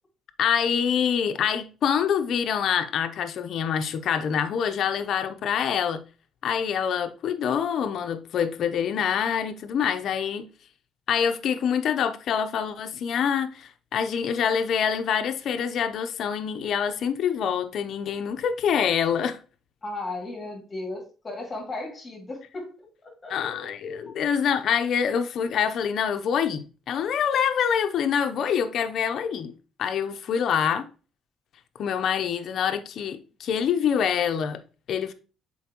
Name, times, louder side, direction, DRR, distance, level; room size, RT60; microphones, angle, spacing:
voice 1, 0.4-6.0 6.4-10.5 11.1-19.4 23.3-29.5 29.8-30.9 31.8-34.6 34.9-35.1, left 7 dB, 60° left, 0.7 m, -26 dB
voice 2, 19.8-23.4, left 2 dB, 25° left, 2.4 m, -36 dB
7.1 x 4.5 x 3.0 m
cardioid pair, 115°, 0 cm